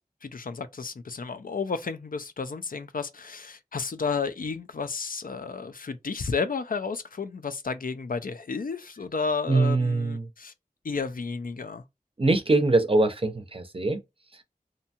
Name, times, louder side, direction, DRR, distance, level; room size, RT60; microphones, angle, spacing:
voice 1, 0.2-10.5 10.8-11.8, left 5 dB, 70° left, 0.4 m, -32 dB
voice 2, 9.5-10.3 12.2-14.0 14.3-14.4, right 2 dB, 40° right, 0.5 m, -23 dB
2.7 x 2.2 x 2.8 m
wide cardioid pair, 45°, 15 cm